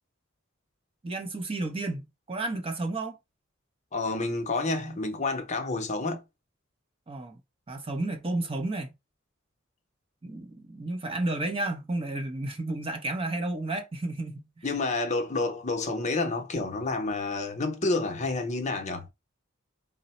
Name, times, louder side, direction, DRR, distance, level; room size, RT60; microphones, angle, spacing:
voice 1, 1.0-3.2 7.1-7.4 7.7-8.9 10.2-14.6, right 2 dB, 30° right, 0.6 m, -32 dB
voice 2, 3.9-6.2 14.6-19.1, left 3 dB, 35° left, 0.7 m, -29 dB
3.8 x 2.0 x 4.1 m
head